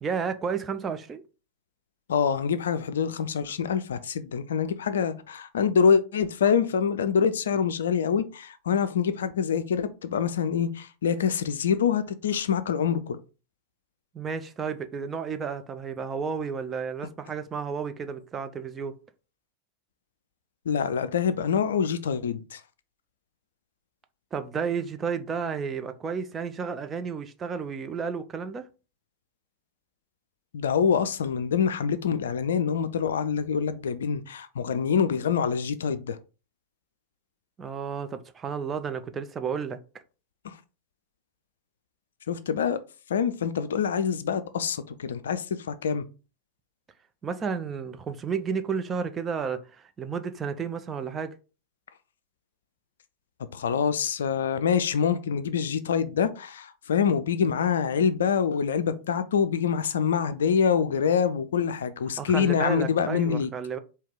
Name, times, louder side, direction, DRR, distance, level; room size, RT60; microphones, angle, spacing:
voice 1, 0.0-1.2 14.1-18.9 24.3-28.7 37.6-39.8 47.2-51.4 62.2-63.8, right 6 dB, 20° right, 0.5 m, -32 dB
voice 2, 2.1-13.2 20.7-22.6 30.5-36.2 40.4-40.6 42.3-42.8 43.1-46.0 53.5-63.5, left 7 dB, 65° left, 0.4 m, -25 dB
4.5 x 2.9 x 3.7 m
figure-of-eight pair, 90°, 0 cm